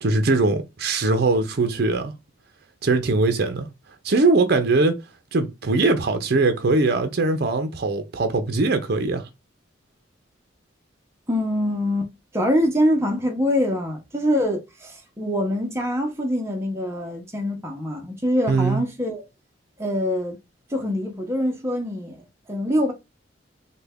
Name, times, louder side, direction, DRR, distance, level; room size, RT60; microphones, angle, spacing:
voice 1, 0.0-2.1 2.8-3.7 4.0-5.0 5.3-9.3 18.5-18.8, right 3 dB, 55° right, 0.5 m, -21 dB
voice 2, 11.3-19.2 19.8-20.4 20.7-22.9, equal, 15° right, 0.7 m, -24 dB
3.3 x 2.2 x 3.4 m
head